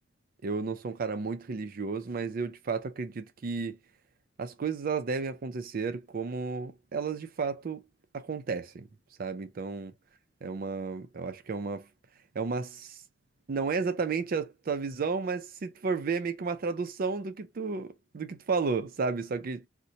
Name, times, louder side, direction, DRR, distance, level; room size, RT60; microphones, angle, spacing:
voice 1, 0.4-3.8 4.4-7.8 8.1-8.9 9.2-9.9 10.4-11.9 12.3-13.0 13.5-19.7, right 4 dB, 50° right, 0.4 m, -32 dB
2.8 x 2.1 x 3.8 m
head